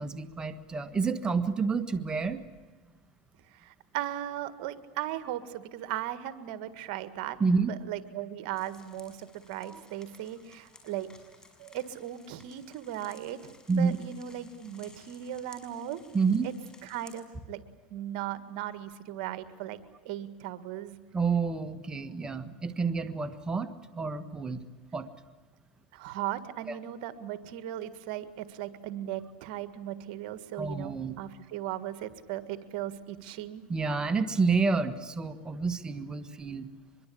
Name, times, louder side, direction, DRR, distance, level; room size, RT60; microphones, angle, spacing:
voice 1, 0.0-2.4 7.4-7.7 9.6-9.8 13.7-14.0 16.1-16.5 21.1-24.6 24.9-25.1 26.7-26.8 30.6-31.2 33.7-36.7, right 4 dB, 15° right, 9 dB, 1.6 m, -29 dB
voice 2, 3.5-7.4 7.7-11.1 11.6-16.0 16.8-17.6 17.9-19.8 20.1-21.0 25.9-33.6, right 12 dB, 65° right, 12 dB, 1.8 m, -37 dB
sound 1, 8.6-17.2, left 3 dB, 15° left, 6.1 m, -57 dB
24.0 x 22.5 x 8.6 m, 1.3 s
supercardioid pair, 115°, 5 cm